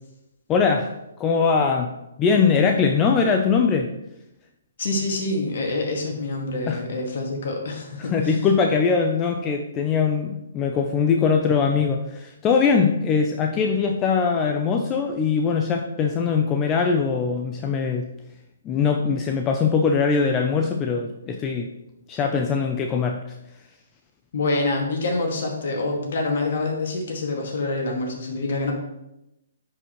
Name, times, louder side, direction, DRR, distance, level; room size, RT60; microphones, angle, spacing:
voice 1, 0.5-0.9 1.2-1.9 2.2-3.9 6.7-6.8 8.0-18.1 18.6-21.7 22.1-23.2, left 5 dB, 20° left, 3 dB, 0.6 m, -21 dB
voice 2, 4.8-8.3 24.3-28.7, left 2 dB, 60° left, 1 dB, 2.1 m, -26 dB
10.5 x 5.1 x 3.2 m, 0.87 s
figure-of-eight pair, 130°, 0 cm